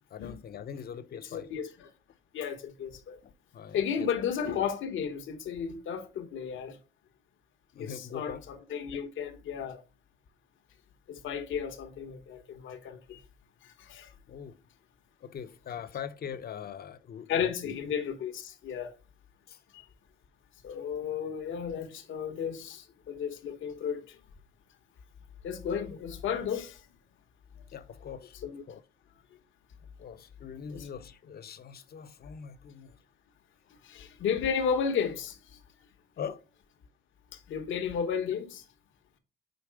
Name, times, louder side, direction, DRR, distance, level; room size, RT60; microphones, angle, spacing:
voice 1, 0.1-1.5 3.2-4.1 7.7-8.4 14.3-14.6 15.2-17.8 19.5-19.6 27.7-28.4 28.7-28.8 30.0-33.0 36.2-36.4, left 7 dB, 50° left, 0.7 m, -42 dB
voice 2, 1.2-1.7 2.3-3.2 3.7-6.8 7.8-9.8 11.1-13.2 13.6-14.1 17.3-18.9 19.7-19.9 20.6-24.2 25.4-26.8 28.4-28.6 30.7-30.9 33.8-35.6 37.3-38.6, left 7 dB, 75° left, 1.1 m, -33 dB
5.1 x 4.1 x 4.7 m
cardioid pair, 90°, 20 cm